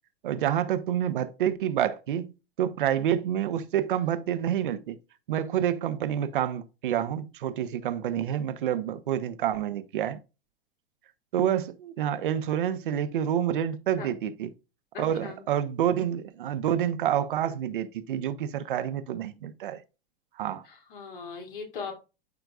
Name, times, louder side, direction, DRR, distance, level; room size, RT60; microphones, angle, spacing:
voice 1, 0.2-2.3 2.6-5.0 5.3-10.2 11.3-14.5 15.0-19.8 20.4-20.6, right 10 dB, 60° right, 1.1 m, -28 dB
voice 2, 14.9-15.4 20.6-22.0, left 5 dB, 65° left, 2.9 m, -39 dB
13.5 x 4.5 x 2.4 m
figure-of-eight pair, 95°, 29 cm